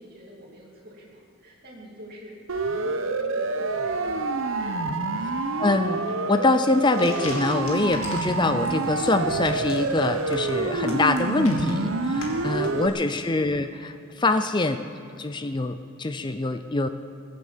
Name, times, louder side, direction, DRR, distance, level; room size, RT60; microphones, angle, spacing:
voice 1, 0.0-2.4 2.7-4.2 4.6-4.9 12.2-13.1, equal, 40° right, -3 dB, 2.8 m, -45 dB
Siren, 2.5-12.9, right 3 dB, 60° right, 0.9 m, -27 dB
voice 2, 5.6-6.0 6.3-14.9 15.1-16.9, left 2 dB, 20° left, 9 dB, 0.5 m, -24 dB
sound 1, 6.7-13.2, left 2 dB, 60° left, 2.5 m, -40 dB
22.0 x 8.3 x 7.3 m, 2.6 s
head